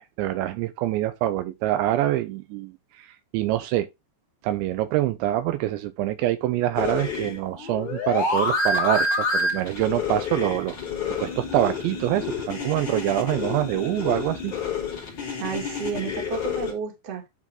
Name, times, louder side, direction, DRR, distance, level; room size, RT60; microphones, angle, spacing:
voice 1, 0.0-3.1 3.3-3.9 4.4-10.8 11.1-14.5, right 14 dB, 80° right, 2.9 m, -25 dB
sound 1, 6.7-16.7, left 3 dB, 30° left, 2.5 m, -28 dB
voice 2, 15.4-17.3, right 6 dB, 45° right, 2.2 m, -31 dB
11.0 x 4.0 x 3.6 m
omnidirectional pair, 5.3 m